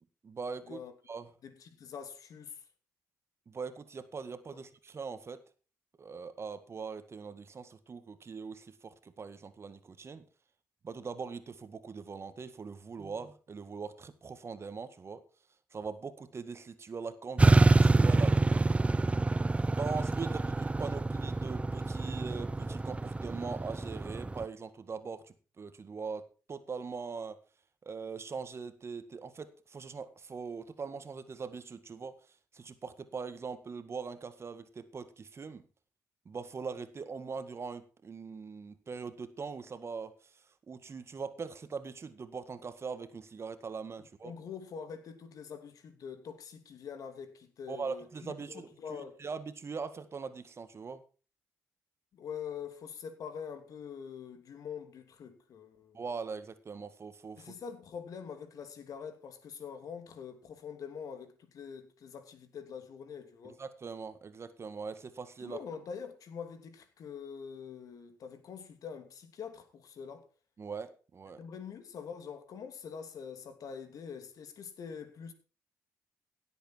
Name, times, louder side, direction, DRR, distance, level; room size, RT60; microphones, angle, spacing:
voice 1, 0.2-0.8 1.1-1.3 3.5-5.4 6.0-10.2 10.8-15.2 15.7-18.6 19.7-27.4 27.8-32.2 32.5-35.6 36.3-40.1 40.7-44.3 47.7-48.7 49.2-51.0 55.9-57.5 63.4-65.6 70.6-71.4, right 5 dB, 45° right, 1.8 m, -41 dB
voice 2, 1.4-2.7 4.5-4.6 44.0-49.2 52.1-56.0 57.4-63.6 65.4-70.3 71.4-75.3, left 7 dB, 65° left, 2.7 m, -45 dB
sound 1, 17.4-24.4, right 2 dB, 20° right, 0.6 m, -27 dB
17.0 x 8.2 x 4.6 m
supercardioid pair, 60°, 6 cm